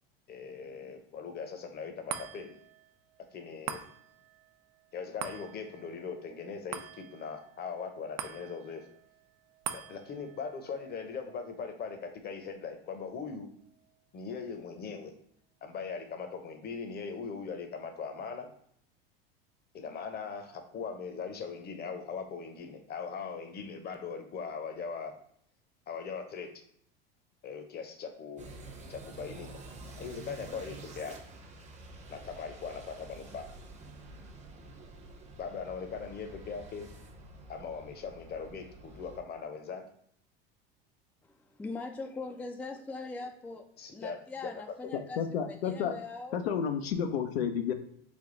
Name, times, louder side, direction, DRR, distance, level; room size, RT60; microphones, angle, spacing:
voice 1, 0.3-2.5 3.3-3.8 4.9-8.9 9.7-13.5 14.1-15.1 15.6-18.5 19.7-25.1 25.9-26.5 27.4-28.5 28.9-29.6 30.0-31.2 32.1-33.5 35.4-36.9 37.5-39.8 43.8-44.2 44.8-44.9, left 5 dB, 35° left, 6 dB, 0.7 m, -40 dB
sound 1, 2.1-14.7 15.1-15.2, right 9 dB, 70° right, 0.5 m, -46 dB
sound 2, 28.4-39.2, right 2 dB, 25° right, 0.7 m, -49 dB
voice 2, 41.2-43.7 43.9-46.4, left 3 dB, 5° left, 4 dB, 0.3 m, -41 dB
voice 3, 44.9-45.9 46.3-47.7, left 7 dB, 85° left, 6 dB, 0.5 m, -31 dB
3.5 x 2.3 x 3.8 m, 0.67 s
hypercardioid pair, 95°, 30 cm